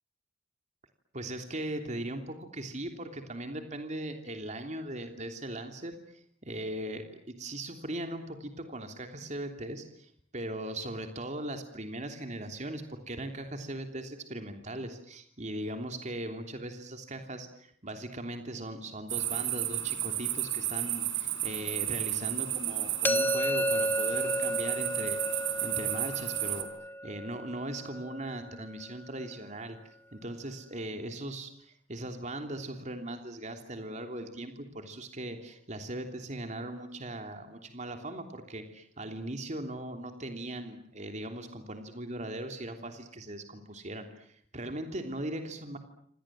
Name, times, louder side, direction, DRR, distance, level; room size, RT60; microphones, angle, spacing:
voice 1, 1.1-5.9 6.4-26.7 27.0-29.8 30.1-45.8, right 1 dB, 40° right, 5 dB, 3.2 m, -39 dB
sound 1, 19.1-26.6, right 13 dB, 75° right, 4.7 m, -32 dB
sound 2, 23.0-28.9, equal, 10° left, 1.1 m, -33 dB
28.5 x 26.5 x 7.6 m, 0.65 s
head